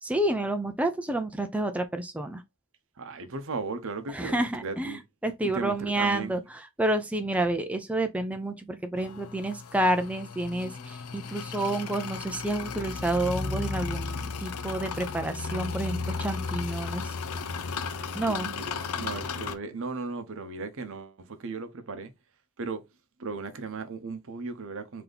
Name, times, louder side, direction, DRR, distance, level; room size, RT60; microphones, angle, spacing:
voice 1, 0.0-2.4 4.1-17.1 18.1-18.5, right 1 dB, 5° right, 0.4 m, -29 dB
voice 2, 3.0-5.0 5.5-6.3 18.0-22.1 22.6-22.8 23.2-25.0, right 4 dB, 60° right, 0.7 m, -36 dB
sound 1, 9.0-19.5, left 4 dB, 80° left, 0.6 m, -35 dB
3.9 x 2.8 x 3.3 m
head